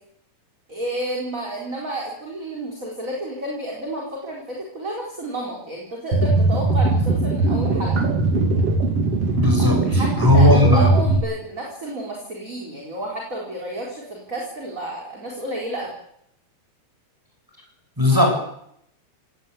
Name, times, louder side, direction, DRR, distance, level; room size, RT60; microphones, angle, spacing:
voice 1, 0.7-8.0 9.8-15.9 18.1-18.3, right 1 dB, 20° right, -2 dB, 4.4 m, -31 dB
sound 1, 6.1-11.2, right 3 dB, 40° right, 3.1 m, -19 dB
voice 2, 9.3-10.9 18.0-18.3, left 2 dB, 5° right, 2 dB, 7.3 m, -18 dB
23.5 x 18.5 x 8.5 m, 0.73 s
omnidirectional pair, 4.4 m